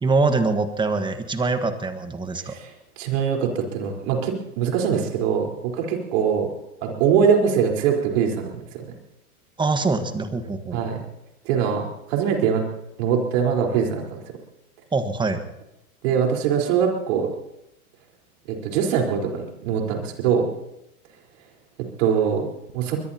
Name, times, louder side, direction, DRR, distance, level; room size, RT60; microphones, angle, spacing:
voice 1, 0.0-2.5 9.6-10.8 14.9-15.5, right 3 dB, 10° right, 8 dB, 1.4 m, -23 dB
voice 2, 2.4-6.5 6.8-8.9 10.7-11.0 11.4-12.7 13.0-14.2 16.0-17.3 18.5-20.5 22.0-22.5 22.7-23.0, right 7 dB, 55° right, 1 dB, 4.3 m, -23 dB
23.0 x 21.5 x 2.9 m, 0.88 s
hypercardioid pair, 125°, 44 cm